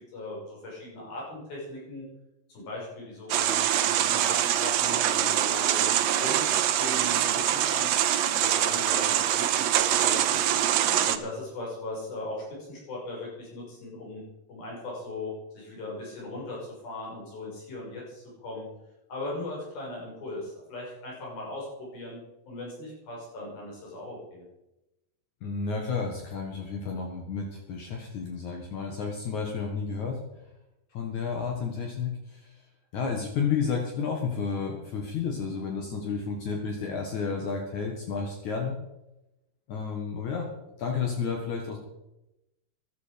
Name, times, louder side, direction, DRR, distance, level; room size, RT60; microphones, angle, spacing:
voice 1, 0.1-2.1 2.5-5.8 6.2-7.9 8.4-10.7 11.0-14.2 14.5-16.6 16.8-18.7 19.1-22.2 22.5-24.5, left 2 dB, 90° left, -3 dB, 8.0 m, -39 dB
sound 1, 3.3-11.2, right 11 dB, 85° right, 1.5 m, -24 dB
voice 2, 25.4-30.2 30.9-32.5 32.9-38.7 39.7-40.5 40.8-41.8, left 5 dB, 60° left, 1 dB, 2.8 m, -31 dB
14.5 x 12.0 x 5.2 m, 0.92 s
omnidirectional pair, 4.1 m